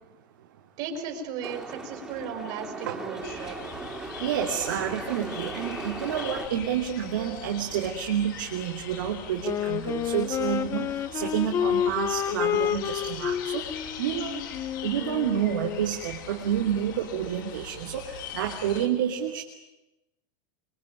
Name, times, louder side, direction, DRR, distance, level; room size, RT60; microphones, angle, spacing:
voice 1, 0.8-3.6, right 6 dB, 50° right, 3 dB, 5.3 m, -36 dB
sound 1, 1.4-6.5, right 2 dB, 10° right, 2.7 m, -38 dB
sound 2, 3.2-18.9, left 8 dB, 85° left, 5.1 m, -42 dB
voice 2, 4.2-14.5 14.8-19.4, right 9 dB, 85° right, 2 dB, 3.1 m, -29 dB
Wind instrument woodwind instrument, 9.4-16.0, left 10 dB, 25° left, 1.0 m, -29 dB
26.0 x 24.5 x 9.2 m, 0.96 s
supercardioid pair, 170°, 11 cm